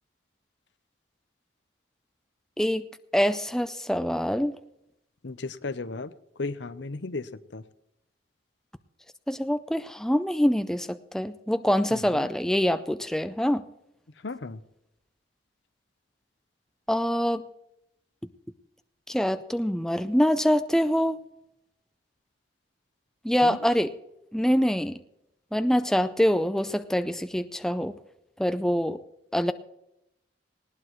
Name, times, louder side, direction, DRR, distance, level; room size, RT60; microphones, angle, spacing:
voice 1, 3.1-4.6 9.3-13.6 16.9-17.4 19.1-21.2 23.2-23.9 24.3-25.0 25.5-27.9 28.4-29.0 29.3-29.5, equal, 5° left, 10 dB, 0.4 m, -25 dB
voice 2, 5.2-6.1 6.4-7.6 11.9-12.3 14.2-14.6 23.4-23.6, left 3 dB, 70° left, 13 dB, 0.8 m, -35 dB
19.5 x 18.0 x 3.1 m, 0.82 s
head